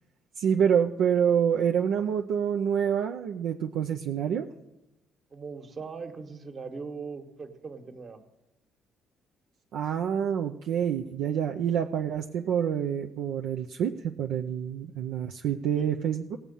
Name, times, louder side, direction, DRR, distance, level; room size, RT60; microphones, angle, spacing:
voice 1, 0.4-4.5 9.7-16.4, right 8 dB, 75° right, 2 dB, 0.5 m, -27 dB
voice 2, 5.3-8.2 15.7-15.8, right 5 dB, 45° right, 5 dB, 1.6 m, -40 dB
17.0 x 7.3 x 5.4 m, 0.90 s
supercardioid pair, 65°, 0 cm